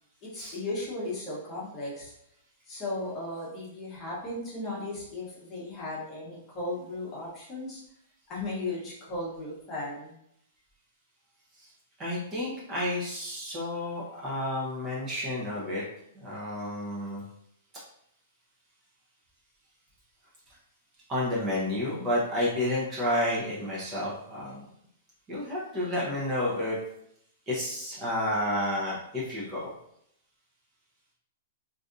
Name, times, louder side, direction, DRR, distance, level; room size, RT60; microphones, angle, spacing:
voice 1, 0.2-2.1 2.7-7.8 8.3-10.1, left 2 dB, 25° left, -5 dB, 1.0 m, -36 dB
voice 2, 12.0-15.8 16.1-17.2 21.1-24.7 25.3-26.8 27.5-29.7, left 1 dB, 20° right, -6 dB, 0.7 m, -30 dB
3.3 x 2.6 x 2.5 m, 0.75 s
hypercardioid pair, 160°, 0 cm